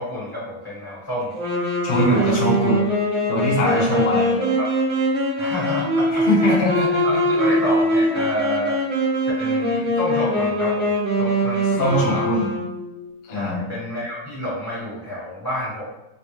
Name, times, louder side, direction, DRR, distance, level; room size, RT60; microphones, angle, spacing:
voice 1, 0.0-1.3 2.1-2.4 3.6-4.7 5.4-6.3 7.0-8.7 9.4-10.9 11.2-12.3 13.3-15.8, equal, 15° left, -10 dB, 1.1 m, -29 dB
Wind instrument woodwind instrument, 1.3-13.0, equal, 50° right, 0.9 m, -22 dB
voice 2, 1.8-2.8 3.3-4.3 6.3-7.2 11.8-12.5 13.2-13.6, equal, 65° left, -5 dB, 0.7 m, -21 dB
3.4 x 2.4 x 2.9 m, 0.92 s
omnidirectional pair, 2.4 m